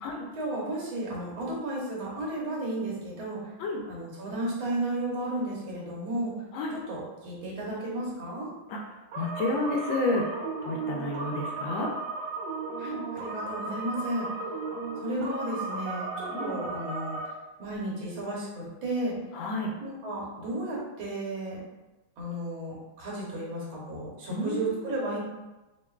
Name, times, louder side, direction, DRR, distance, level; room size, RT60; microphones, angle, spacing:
voice 1, 0.4-3.4 3.9-6.3 6.7-8.5 12.8-14.3 15.0-17.2 17.6-19.2 19.8-21.6 22.2-25.2, right 1 dB, 70° right, -5 dB, 1.8 m, -33 dB
sound 1, 9.1-17.3, right 3 dB, 90° right, 1.6 m, -35 dB
voice 2, 9.2-10.2 10.7-11.9 16.3-16.6 19.3-19.7 24.3-25.0, left 2 dB, 75° left, 0 dB, 1.2 m, -30 dB
5.3 x 2.5 x 2.3 m, 1.1 s
omnidirectional pair, 2.3 m